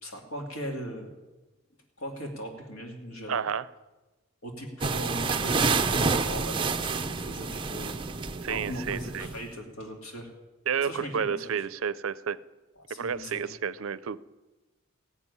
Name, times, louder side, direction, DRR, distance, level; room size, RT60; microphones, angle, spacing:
voice 1, 0.0-1.1 2.0-3.4 4.4-8.1 8.5-10.3 10.8-11.3 12.8-13.4, equal, 80° left, 2 dB, 2.4 m, -39 dB
voice 2, 3.3-3.7 8.4-9.3 10.7-12.4 12.9-14.2, right 7 dB, 70° right, 18 dB, 0.5 m, -31 dB
Putting on a satin dress, 4.8-9.4, right 4 dB, 25° right, 0.6 m, -28 dB
16.0 x 7.2 x 9.7 m, 1.1 s
head